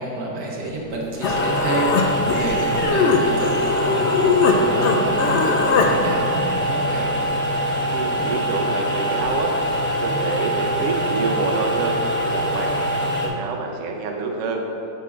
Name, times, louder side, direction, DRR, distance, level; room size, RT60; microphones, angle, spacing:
voice 1, 0.0-7.1, right 2 dB, 85° right, -3 dB, 1.7 m, -29 dB
Human voice, 0.9-1.0 1.2-4.6 4.8-5.9, left 5 dB, 65° left, 0.7 m, -21 dB
sound 1, 1.2-13.3, equal, 10° left, 0.6 m, -24 dB
voice 2, 7.9-9.5 10.0-14.6, right 4 dB, 60° right, 2 dB, 0.9 m, -27 dB
9.3 x 7.3 x 2.4 m, 2.9 s
omnidirectional pair, 1.7 m